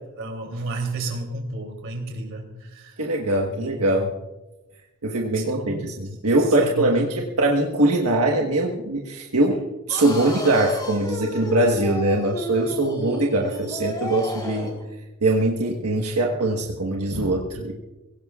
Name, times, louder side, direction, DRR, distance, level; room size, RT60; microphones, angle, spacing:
voice 1, 0.2-3.1 3.5-4.0 5.3-6.1 6.4-7.2, right 2 dB, 60° right, 3 dB, 3.0 m, -33 dB
voice 2, 3.0-4.1 5.0-14.7 15.2-17.7, right 2 dB, 80° right, 0 dB, 1.4 m, -22 dB
sound 1, 9.9-14.8, left 1 dB, 20° left, 3.4 m, -32 dB
22.0 x 17.5 x 2.4 m, 1.1 s
head